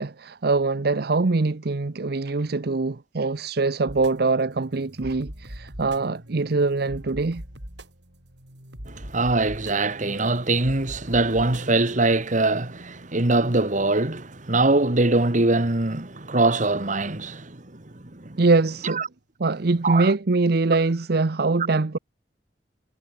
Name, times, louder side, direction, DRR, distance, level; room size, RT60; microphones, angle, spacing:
voice 1, 0.0-7.4 18.4-19.0 19.4-22.0, right 3 dB, 60° right, 0.8 m, -23 dB
sound 1, 3.9-16.4, equal, 75° right, 6.9 m, -43 dB
voice 2, 8.9-17.8 18.1-18.4 18.9-19.0 19.8-20.1, right 2 dB, 45° right, 2.0 m, -23 dB
head